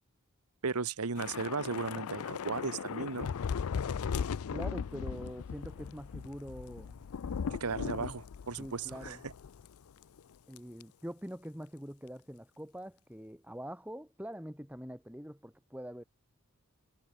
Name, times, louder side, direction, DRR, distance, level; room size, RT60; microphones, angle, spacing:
voice 1, 0.6-3.3 7.5-9.3, right 4 dB, 85° right, 1.1 m, -36 dB
Thunder / Rain, 1.2-9.7 10.0-10.2 10.6-10.8, left 6 dB, 75° left, 0.4 m, -38 dB
voice 2, 4.5-7.0 7.7-8.2 8.6-9.2 10.5-16.0, equal, 5° right, 3.2 m, -44 dB
head